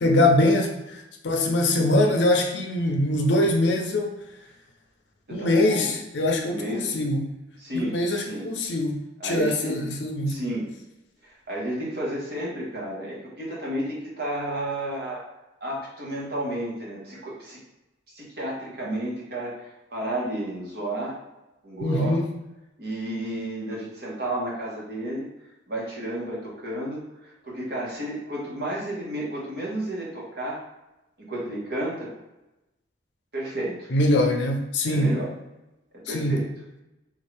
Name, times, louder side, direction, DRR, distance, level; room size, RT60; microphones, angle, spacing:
voice 1, 0.0-4.1 5.3-7.3 7.7-9.0 9.2-10.4 21.8-22.3 33.9-35.2 36.1-36.4, left 1 dB, 70° left, 3 dB, 0.6 m, -23 dB
voice 2, 5.3-5.9 6.4-6.9 7.6-8.5 9.2-9.8 10.3-10.7 11.2-15.2 15.6-17.6 18.1-21.2 21.6-22.2 22.8-25.2 25.7-30.6 31.2-32.1 33.3-33.9 34.8-35.3 35.9-36.5, right 1 dB, 55° right, -5 dB, 1.3 m, -32 dB
3.7 x 2.6 x 3.3 m, 0.97 s
head